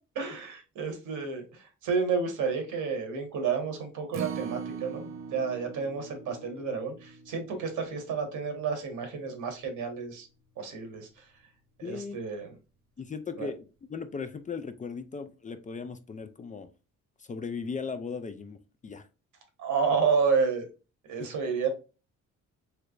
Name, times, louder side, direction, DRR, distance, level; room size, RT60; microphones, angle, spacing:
voice 1, 0.1-10.3 10.6-11.2 11.8-12.5 13.4-13.5 19.6-20.6 21.1-21.7, right 5 dB, 80° right, 1.3 m, -30 dB
Acoustic guitar, 4.1-10.4 10.8-10.9 11.3-11.4, right 6 dB, 45° right, 0.6 m, -42 dB
voice 2, 11.8-12.2 13.0-16.7 17.2-18.6 18.8-19.1 21.2-21.3, left 5 dB, 25° left, 0.4 m, -37 dB
3.3 x 3.0 x 2.4 m
cardioid pair, 90°, 30 cm